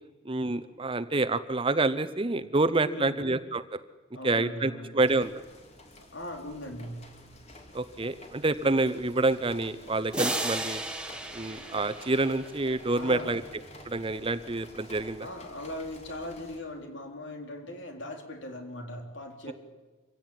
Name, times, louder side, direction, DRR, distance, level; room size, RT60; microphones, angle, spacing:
voice 1, 0.3-3.8 4.2-5.4 7.7-10.8 11.3-13.4 13.9-15.3 19.5-19.6, right 2 dB, 25° right, 12 dB, 0.8 m, -27 dB
voice 2, 2.8-3.2 4.1-5.0 6.0-7.1 13.0-13.4 15.2-19.5, left 1 dB, 65° left, 4 dB, 3.9 m, -39 dB
sound 1, 5.0-16.6, left 1 dB, 35° left, 3.2 m, -51 dB
sound 2, 10.1-12.8, right 2 dB, 5° right, 1.8 m, -34 dB
25.5 x 16.5 x 9.3 m, 1.3 s
head